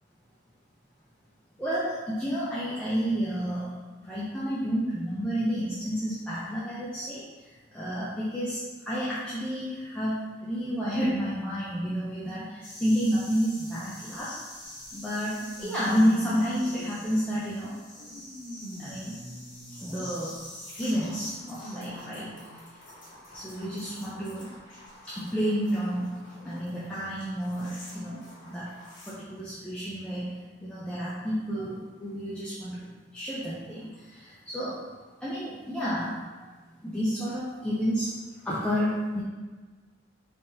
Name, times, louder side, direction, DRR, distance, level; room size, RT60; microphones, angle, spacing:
voice 1, 1.6-3.7 4.0-7.2 7.7-14.4 14.9-17.8 18.8-19.2 19.8-20.4 20.8-22.3 23.3-24.5 25.1-28.7 29.1-30.3 30.6-34.8 35.2-36.2 36.8-38.1 38.4-39.2, equal, 5° left, -9 dB, 0.5 m, -30 dB
sound 1, 12.6-29.1, left 1 dB, 45° left, 1.2 m, -47 dB
sound 2, 14.2-14.3 15.4-17.4 18.0-20.0 21.2-22.6 23.3-23.4 24.6-24.7, left 1 dB, 75° left, 0.9 m, -44 dB
3.6 x 3.4 x 2.7 m, 1.3 s
head